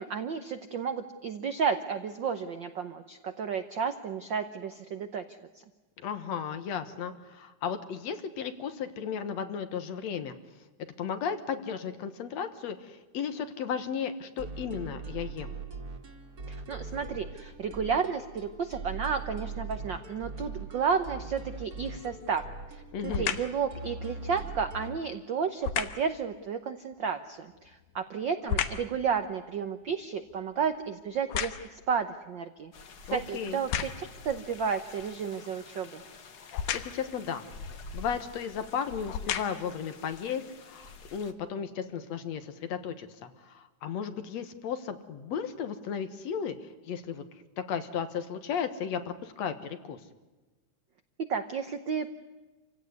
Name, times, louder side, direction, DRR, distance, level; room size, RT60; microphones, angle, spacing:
voice 1, 0.0-5.4 16.5-22.4 23.0-32.7 33.1-36.0 51.2-52.1, right 6 dB, 75° right, 9 dB, 1.0 m, -32 dB
voice 2, 6.0-10.4 11.0-15.6 22.9-23.3 33.1-33.6 36.5-47.2 47.6-50.0, left 7 dB, 65° left, 10 dB, 2.4 m, -35 dB
sound 1, 14.4-25.0, right 4 dB, 30° right, 2.3 m, -41 dB
sound 2, 21.9-22.3 23.1-23.6 25.6-26.1 27.5-29.0 29.4-31.9 32.6-32.7 33.5-34.2 36.5-37.1 38.1-38.3 38.9-39.8 40.4-40.5, left 9 dB, 80° left, 2.6 m, -34 dB
sound 3, 32.7-41.3, left 3 dB, 45° left, 1.3 m, -48 dB
27.5 x 16.5 x 9.5 m, 1.2 s
omnidirectional pair, 3.5 m